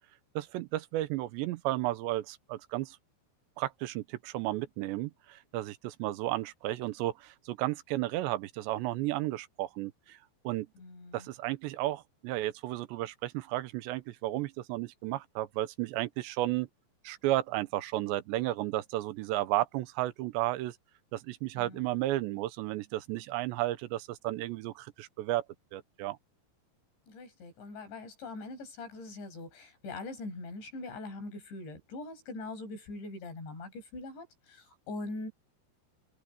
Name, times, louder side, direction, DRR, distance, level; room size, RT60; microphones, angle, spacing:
voice 1, 0.4-3.0 3.6-10.2 10.4-10.7 11.1-16.7 17.0-20.8 21.1-25.4 25.7-26.2, right 16 dB, 90° right, 3.1 m, -33 dB
voice 2, 10.8-11.3 21.6-22.1 27.1-35.3, left 2 dB, 80° left, 10.0 m, -42 dB
omnidirectional pair, 5.0 m